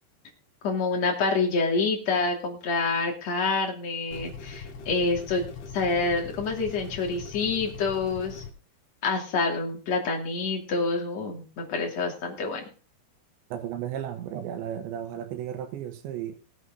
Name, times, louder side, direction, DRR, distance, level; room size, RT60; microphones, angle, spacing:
voice 1, 0.6-5.4 5.7-8.4 9.0-12.6, left 3 dB, 40° left, 3.6 m, -27 dB
sound 1, 4.1-8.5, left 5 dB, 85° left, 4.3 m, -41 dB
voice 2, 13.5-16.4, right 10 dB, 85° right, 3.6 m, -34 dB
19.5 x 8.3 x 4.0 m
omnidirectional pair, 5.1 m